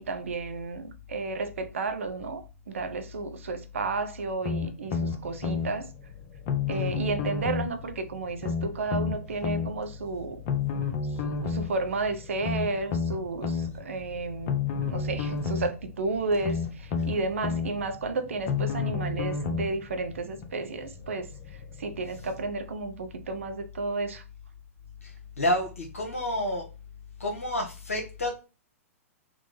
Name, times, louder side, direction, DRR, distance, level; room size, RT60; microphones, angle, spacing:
voice 1, 0.0-5.9 6.7-10.4 11.1-14.6 14.8-24.2, right 3 dB, 60° right, 0.6 m, -32 dB
sound 1, 4.4-22.6, left 5 dB, 15° left, 1.0 m, -51 dB
sound 2, 4.5-5.7 6.5-7.7 8.4-9.7 10.5-11.7 12.4-13.7 14.5-15.7 16.4-17.7 18.5-19.7 20.4-20.5, left 5 dB, 35° left, 0.5 m, -29 dB
voice 2, 25.0-26.6 27.2-28.3, left 1 dB, 70° left, 0.8 m, -29 dB
3.5 x 2.0 x 3.0 m
figure-of-eight pair, 105°, 8 cm